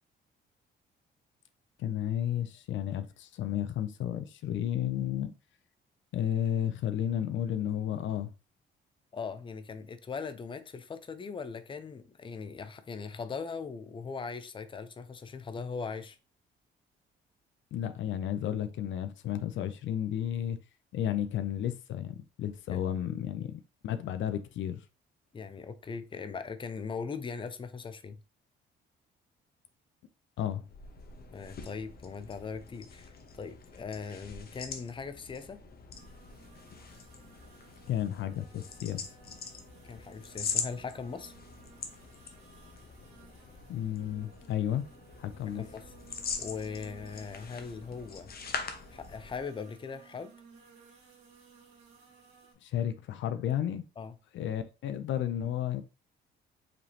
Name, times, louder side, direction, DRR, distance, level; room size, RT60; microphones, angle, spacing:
voice 1, 1.8-5.3 6.1-8.3 17.7-20.6 20.9-24.8 30.4-30.6 37.9-39.0 43.7-44.8 45.2-45.6 52.6-53.8 54.3-55.8, left 10 dB, 70° left, 0.5 m, -32 dB
voice 2, 9.1-16.2 22.7-22.8 25.3-28.2 31.3-35.6 39.8-41.3 45.5-45.8 46.4-48.3 48.9-50.3 54.0-54.2, left 5 dB, 25° left, 0.5 m, -40 dB
sound 1, 30.6-49.5, left 5 dB, 50° left, 0.9 m, -43 dB
sound 2, 35.9-52.5, right 5 dB, 90° right, 1.8 m, -58 dB
5.0 x 3.2 x 2.9 m
cardioid pair, 90°, 20 cm